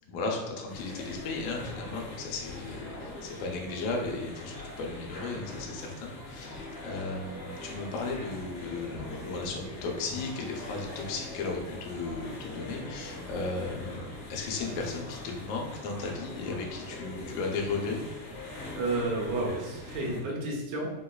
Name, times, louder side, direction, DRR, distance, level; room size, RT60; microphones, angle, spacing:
voice 1, 0.1-18.0, left 3 dB, 85° left, 0 dB, 2.0 m, -35 dB
sound 1, 0.7-20.2, left 2 dB, 65° left, 1.9 m, -42 dB
voice 2, 18.8-20.9, right 2 dB, 75° right, -3 dB, 1.8 m, -31 dB
5.0 x 2.2 x 2.2 m, 1.1 s
omnidirectional pair, 3.3 m